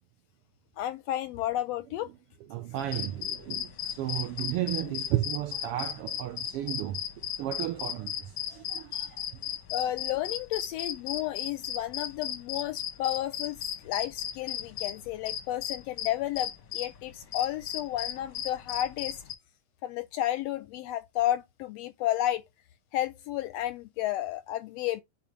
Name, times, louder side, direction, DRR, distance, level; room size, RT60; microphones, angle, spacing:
voice 1, 0.8-2.1 4.8-4.9 9.7-19.2 19.8-22.4 22.9-25.0, left 13 dB, 80° left, 1.5 m, -32 dB
voice 2, 2.5-7.0 7.4-8.1 8.5-9.2, right 13 dB, 80° right, 1.3 m, -33 dB
sound 1, 2.8-16.9 17.3-19.4, left 10 dB, 65° left, 1.1 m, -35 dB
9.6 x 4.5 x 3.1 m
omnidirectional pair, 3.3 m